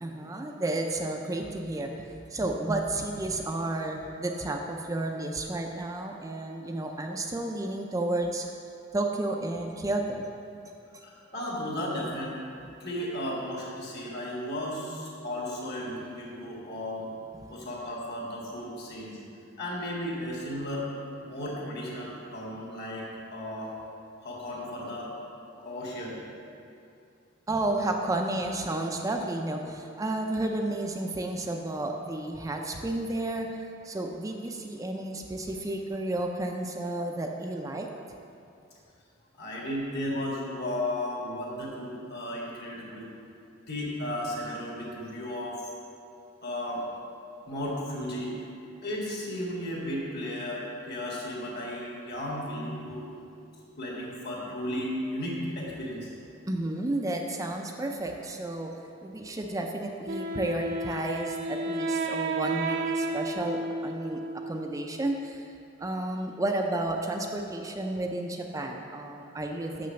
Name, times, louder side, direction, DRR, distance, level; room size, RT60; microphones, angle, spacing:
voice 1, 0.0-8.5 8.9-10.3 27.5-33.5 33.8-37.9 56.5-58.7 59.0-65.5 65.8-69.9, right 2 dB, 15° right, 2 dB, 0.4 m, -32 dB
voice 2, 11.0-12.3 12.8-17.1 17.5-19.2 19.6-20.9 21.2-23.1 23.3-23.7 24.2-25.1 25.6-26.1 39.4-43.0 43.7-45.7 46.4-46.8 47.5-48.3 48.8-53.1 53.8-56.1, left 1 dB, 55° left, -3 dB, 2.0 m, -34 dB
Wind instrument woodwind instrument, 60.1-64.9, right 2 dB, 60° right, 0.6 m, -32 dB
6.3 x 6.0 x 6.8 m, 2.6 s
head